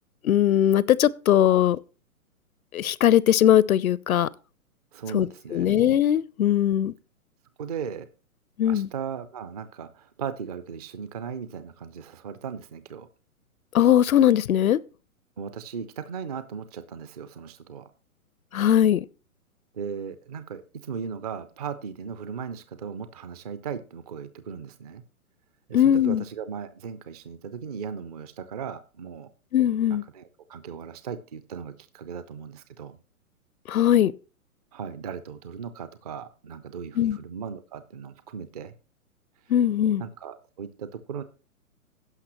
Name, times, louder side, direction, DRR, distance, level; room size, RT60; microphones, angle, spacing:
voice 1, 0.2-1.8 2.7-4.3 5.1-6.9 8.6-8.9 13.7-14.8 18.5-19.1 25.7-26.2 29.5-30.0 33.7-34.1 37.0-37.2 39.5-40.0, left 11 dB, 70° left, 0.5 m, -20 dB
voice 2, 4.9-5.7 7.6-8.1 8.6-13.1 15.4-17.9 19.7-25.0 25.7-29.3 29.9-33.0 34.7-38.7 40.0-41.2, right 7 dB, 30° right, 0.4 m, -37 dB
16.5 x 5.7 x 3.0 m
figure-of-eight pair, 125°, 44 cm